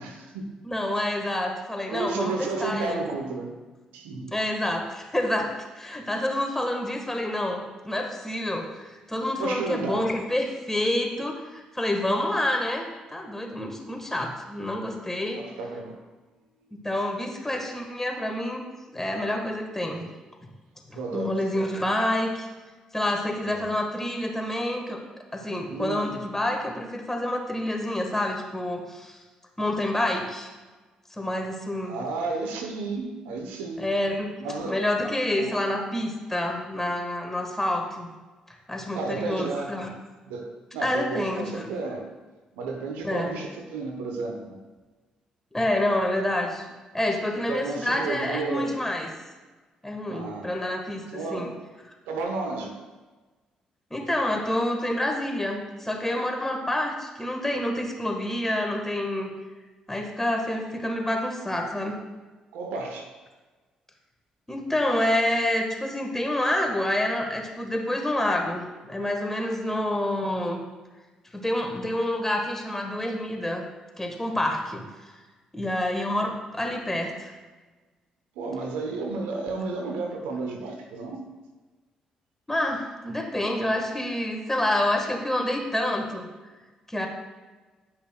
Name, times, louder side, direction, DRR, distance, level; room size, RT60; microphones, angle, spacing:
voice 1, 0.0-0.5 1.9-3.6 3.9-4.4 9.4-10.1 15.3-16.0 20.9-21.7 23.4-23.7 25.7-26.2 31.8-33.9 34.4-34.8 35.4-35.6 38.9-39.8 40.2-42.1 42.5-44.6 47.5-48.9 50.1-50.5 51.1-51.6 52.1-52.7 62.5-63.1 78.4-81.2, right 3 dB, 80° right, 3 dB, 0.8 m, -32 dB
voice 2, 0.6-3.1 4.3-15.4 16.7-18.6 18.9-20.1 20.4-20.5 20.9-22.5 22.9-25.0 25.3-29.2 29.6-30.5 31.2-32.0 33.8-34.3 34.6-38.1 38.7-39.9 40.8-41.6 43.0-43.4 45.5-46.6 46.9-49.1 49.8-51.5 53.9-59.3 59.9-62.0 64.5-70.6 71.3-73.6 74.0-74.8 75.5-77.3 82.5-86.3 86.9-87.1, left 1 dB, 15° left, 2 dB, 1.4 m, -28 dB
10.0 x 5.7 x 2.2 m, 1.3 s
hypercardioid pair, 45°, 3 cm